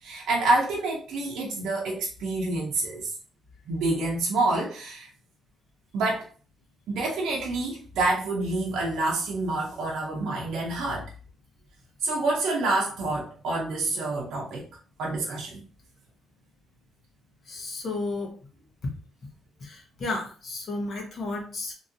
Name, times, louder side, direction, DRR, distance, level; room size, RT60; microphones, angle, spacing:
voice 1, 0.0-3.1 3.7-5.1 5.9-6.3 6.9-11.0 12.0-14.7 15.0-15.6, right 2 dB, 80° right, -3 dB, 0.6 m, -27 dB
voice 2, 17.5-18.3 19.6-21.7, left 2 dB, 55° left, 1 dB, 1.2 m, -33 dB
3.0 x 2.6 x 2.6 m, 0.39 s
cardioid pair, 90°, 0 cm